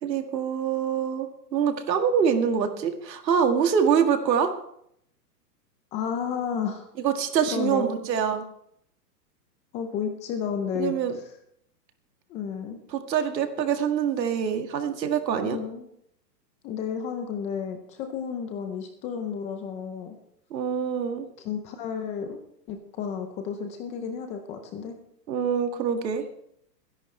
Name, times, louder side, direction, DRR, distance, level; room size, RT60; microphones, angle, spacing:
voice 1, 0.0-4.5 7.0-8.5 10.8-11.1 12.9-15.6 20.5-21.3 25.3-26.2, right 7 dB, 80° right, 6 dB, 2.0 m, -25 dB
voice 2, 5.9-6.9 7.5-7.9 9.7-10.9 12.3-12.8 15.4-15.9 16.6-20.2 21.4-22.4 22.7-24.9, left 7 dB, 15° left, 6 dB, 0.5 m, -32 dB
21.5 x 10.5 x 3.3 m, 0.71 s
hypercardioid pair, 145°, 50 cm